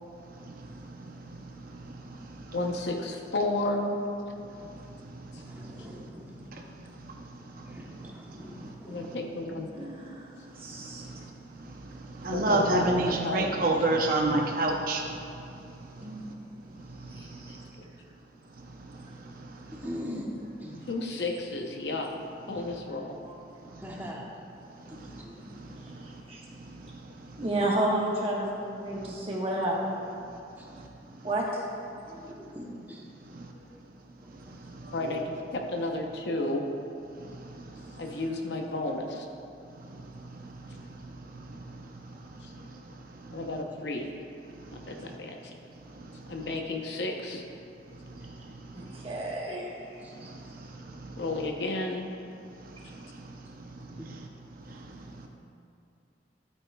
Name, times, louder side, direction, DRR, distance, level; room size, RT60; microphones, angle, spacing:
voice 1, 0.4-2.6 4.7-5.8 6.5-6.6 7.0-8.7 9.0-9.1 10.6-15.4 15.8-16.1 16.8-17.4 18.8-19.8 23.7-24.0 24.8-26.2 26.6-27.3 30.7-30.9 33.3-33.5 34.7-35.2 37.2-38.1 39.8-43.4 44.6-45.2 45.9-46.3 48.0-49.0 50.1-51.2 52.6-54.3 54.7-55.3, right 2 dB, 50° right, 2 dB, 0.7 m, -34 dB
voice 2, 2.5-4.0 8.9-9.9 12.3-13.9 17.1-17.3 20.9-22.1 22.5-23.2 34.9-36.7 38.0-39.2 43.3-44.1 44.9-45.4 46.3-47.4 51.2-52.1, left 2 dB, 65° left, 2 dB, 0.8 m, -32 dB
voice 3, 5.4-6.3 6.6-6.7 7.7-9.1 9.5-9.6 13.7-13.9 16.0-16.2 19.7-20.3 20.6-20.8 23.8-24.3 24.9-25.5 27.4-27.5 30.6-30.7 31.1-31.3 32.1-33.0 34.2-34.3 50.0-50.1 54.0-54.1, equal, 10° right, -2 dB, 1.0 m, -42 dB
voice 4, 9.7-12.0 15.5-17.4 18.7-19.0 19.5-19.7 20.7-20.8 22.9-24.0 24.6-26.9 27.2-30.0 31.2-31.7 48.7-50.7 52.8-53.0 53.9-55.3, right 1 dB, 30° right, -3 dB, 1.3 m, -35 dB
12.5 x 8.6 x 2.3 m, 2.7 s
head